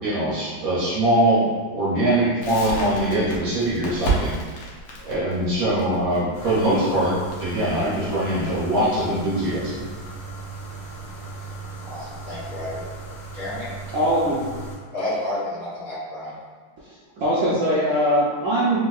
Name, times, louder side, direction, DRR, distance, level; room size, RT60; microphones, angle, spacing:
voice 1, 0.0-4.3 5.0-9.8, right 1 dB, 60° right, -8 dB, 1.0 m, -22 dB
Crackle, 2.4-9.2, right 3 dB, 80° left, 1.4 m, -31 dB
sound 1, 6.3-14.8, right 3 dB, 30° left, 1.4 m, -37 dB
voice 2, 11.9-12.8 13.3-13.7 14.9-16.3, left 1 dB, 50° left, -11 dB, 1.4 m, -30 dB
voice 3, 13.9-14.5 17.2-18.8, equal, 90° right, -8 dB, 0.7 m, -21 dB
3.5 x 2.8 x 2.3 m, 1.5 s
omnidirectional pair, 2.1 m